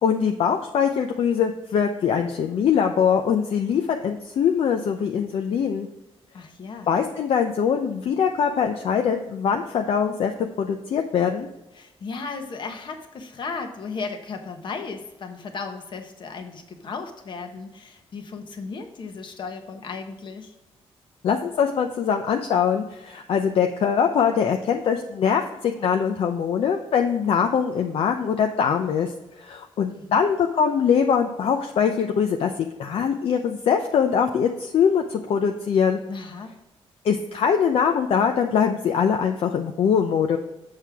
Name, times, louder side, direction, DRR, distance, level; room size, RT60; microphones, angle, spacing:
voice 1, 0.0-5.9 6.9-10.3 10.6-11.5 21.2-29.1 29.4-32.5 32.8-36.0 37.0-40.4, left 7 dB, 60° left, 4 dB, 0.6 m, -22 dB
voice 2, 6.3-6.9 11.7-20.5 29.9-30.2 36.1-36.5, left 4 dB, 45° left, 5 dB, 1.2 m, -35 dB
7.5 x 6.5 x 3.5 m, 0.96 s
wide cardioid pair, 145°, 11 cm